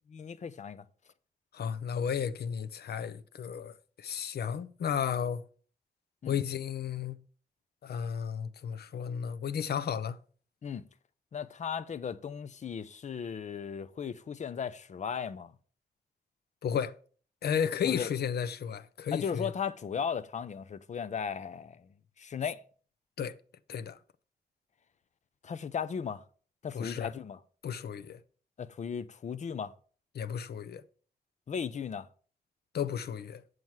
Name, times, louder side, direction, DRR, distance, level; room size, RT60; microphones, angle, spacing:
voice 1, 0.1-0.8 6.2-6.4 10.6-10.8 11.3-15.5 17.8-18.1 19.1-21.9 22.2-22.6 25.4-26.2 26.6-27.4 28.6-29.7 31.5-32.1, left 7 dB, 45° left, 0.6 m, -36 dB
voice 2, 1.5-5.4 6.3-7.2 7.8-10.2 16.6-16.9 17.4-19.5 23.2-23.4 23.7-24.0 26.7-27.1 27.6-28.2 30.1-30.8 32.7-33.4, left 8 dB, 85° left, 0.6 m, -33 dB
7.9 x 7.3 x 4.6 m
wide cardioid pair, 160°, 16 cm